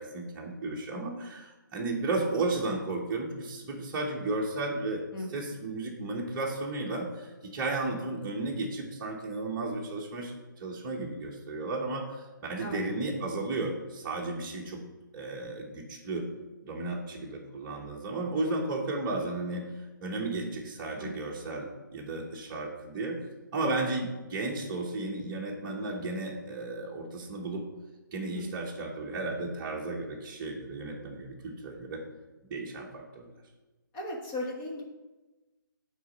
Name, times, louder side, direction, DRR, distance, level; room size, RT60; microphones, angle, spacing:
voice 1, 0.0-5.0 5.3-7.3 7.5-10.3 10.6-14.8 15.1-16.2 16.6-19.6 20.0-23.2 23.5-27.6 28.1-32.0 32.4-33.3, right 2 dB, 20° right, -3 dB, 1.1 m, -34 dB
voice 2, 5.1-5.5 12.6-12.8 21.0-21.3 28.3-28.7 33.9-34.8, left 1 dB, 20° left, -1 dB, 1.1 m, -37 dB
8.4 x 4.1 x 5.4 m, 1.1 s
hypercardioid pair, 160°, 11 cm